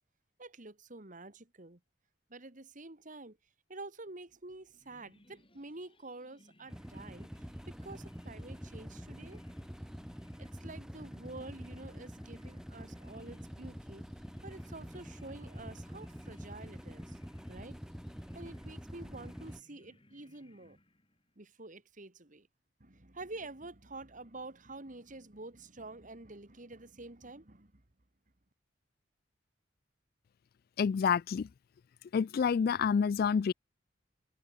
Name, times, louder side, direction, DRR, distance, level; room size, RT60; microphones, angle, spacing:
voice 1, 0.4-1.8 2.3-3.4 3.7-9.4 10.4-14.1 14.4-17.2 17.5-17.8 18.3-20.8 21.4-22.5 22.8-27.8, right 2 dB, 45° right, 2.3 m, -48 dB
sound 1, 4.8-21.4, left 1 dB, 30° left, 7.4 m, -64 dB
sound 2, 6.7-19.6, equal, 5° right, 2.4 m, -46 dB
voice 2, 30.8-31.5 32.1-33.5, left 6 dB, 55° left, 0.3 m, -28 dB
head